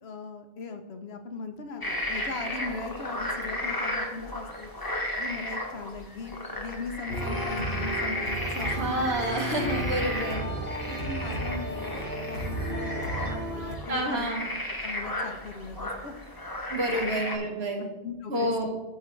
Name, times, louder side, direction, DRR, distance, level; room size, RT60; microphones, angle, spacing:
voice 1, 0.0-9.4 10.9-14.3 14.8-16.1 16.9-17.1 18.0-18.5, left 4 dB, 85° left, 6 dB, 1.1 m, -39 dB
sound 1, 1.8-17.4, left 1 dB, 20° left, 1.1 m, -34 dB
sound 2, 7.1-13.8, right 1 dB, 70° right, 2.0 m, -33 dB
voice 2, 8.6-10.4 13.9-14.5 16.7-17.9 18.3-18.7, right 1 dB, 90° right, 2 dB, 1.6 m, -29 dB
13.0 x 4.7 x 3.2 m, 0.98 s
omnidirectional pair, 1.0 m